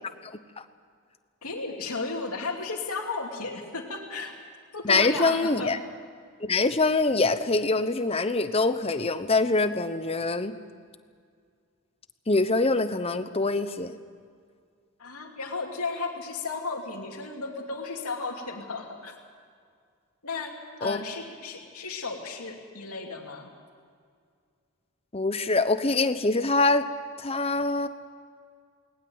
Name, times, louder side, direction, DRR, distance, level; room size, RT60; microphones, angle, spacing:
voice 1, 0.2-0.6 4.8-5.8 6.5-10.5 12.3-13.9 20.8-21.0 25.1-26.9 27.2-27.9, left 3 dB, 25° left, 11 dB, 0.9 m, -24 dB
voice 2, 1.4-4.3 4.7-5.7 15.0-19.1 20.2-23.5, left 4 dB, 85° left, 1 dB, 2.9 m, -34 dB
20.0 x 19.5 x 8.0 m, 2.1 s
head